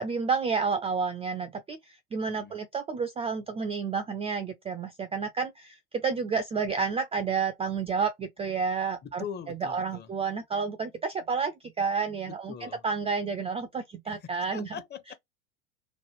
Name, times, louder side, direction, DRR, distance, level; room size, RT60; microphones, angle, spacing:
voice 1, 0.0-14.8, right 5 dB, 15° right, 0.3 m, -30 dB
voice 2, 9.0-10.1 12.3-12.8 14.1-15.1, left 8 dB, 25° left, 0.6 m, -42 dB
3.1 x 2.1 x 2.9 m
hypercardioid pair, 90°, 41 cm